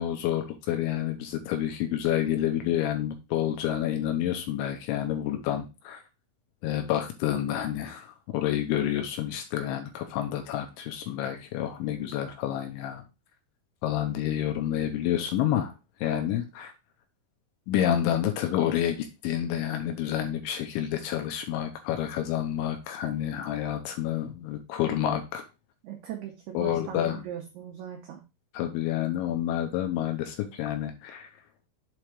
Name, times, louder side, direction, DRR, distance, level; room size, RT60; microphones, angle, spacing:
voice 1, 0.0-6.0 6.6-13.0 13.8-15.7 16.0-16.7 17.7-25.5 26.5-27.2 28.5-31.3, left 11 dB, 80° left, 5 dB, 3.0 m, -29 dB
voice 2, 25.8-28.2, right 10 dB, 80° right, 2 dB, 2.3 m, -40 dB
7.6 x 3.5 x 4.6 m, 0.28 s
omnidirectional pair, 5.9 m